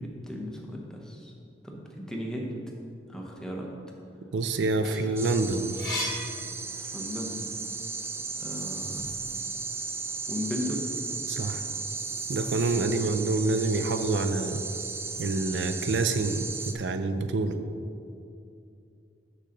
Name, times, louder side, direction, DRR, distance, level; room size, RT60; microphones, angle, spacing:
voice 1, 0.0-1.3 1.6-2.6 3.1-3.7 6.8-7.4 8.4-9.2 10.3-10.9, equal, 5° left, -1 dB, 0.8 m, -36 dB
voice 2, 4.3-5.7 11.3-11.6 12.3-14.6 15.2-17.6, right 3 dB, 85° right, 8 dB, 0.4 m, -27 dB
sound 1, 4.6-7.2 7.7-9.1, left 1 dB, 20° left, 1.8 m, -37 dB
sound 2, 5.2-16.7, right 4 dB, 15° right, 0.3 m, -35 dB
6.7 x 4.0 x 6.5 m, 2.5 s
head